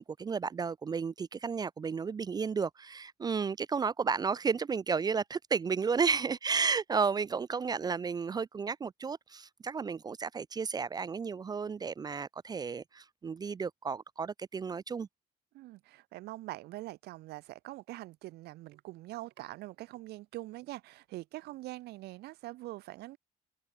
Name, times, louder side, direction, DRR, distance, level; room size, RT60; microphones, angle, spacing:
voice 1, 0.0-15.1, right 5 dB, 25° right, 0.3 m, -32 dB
voice 2, 15.5-23.2, right 18 dB, 90° right, 0.7 m, -44 dB
cardioid pair, 120°, 16 cm